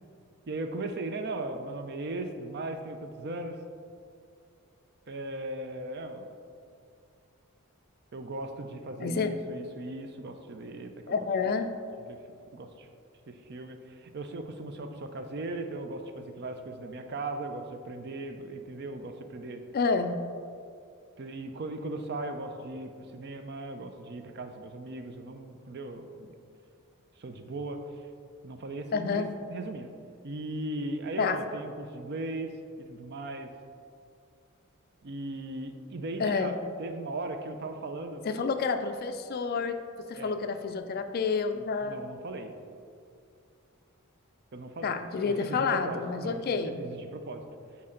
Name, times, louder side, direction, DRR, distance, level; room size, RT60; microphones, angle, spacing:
voice 1, 0.5-3.6 5.1-6.3 8.1-11.2 12.1-12.2 12.5-12.9 13.3-19.6 21.2-26.3 27.2-27.8 28.4-29.9 30.2-32.5 32.9-33.5 35.0-38.2 40.2-40.4 41.8-42.5 44.5-45.0 45.2-47.4, right 2 dB, 50° right, 7 dB, 0.5 m, -38 dB
voice 2, 9.0-9.3 11.1-11.7 19.7-20.2 28.9-29.3 31.2-31.4 36.2-36.6 38.2-42.0 44.8-46.8, left 5 dB, 45° left, 8 dB, 0.3 m, -29 dB
8.5 x 4.3 x 3.8 m, 2.3 s
head